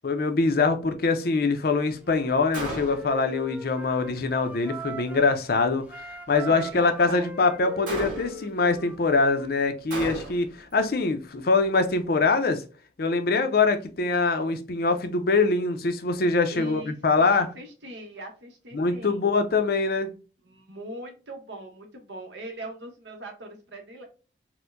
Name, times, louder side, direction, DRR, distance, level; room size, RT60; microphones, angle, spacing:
voice 1, 0.0-12.6 13.0-17.5 18.7-20.1, left 3 dB, 55° left, 0.5 m, -24 dB
Wind instrument woodwind instrument, 2.0-5.4 5.8-9.5, right 1 dB, 5° right, 0.3 m, -41 dB
Gunshot gunfire, 2.5-3.2 7.9-8.5 9.9-10.6, right 1 dB, 45° right, 1.7 m, -34 dB
voice 2, 6.5-7.4 16.5-19.3 20.4-24.0, right 2 dB, 75° right, 1.0 m, -40 dB
4.3 x 2.1 x 2.5 m
head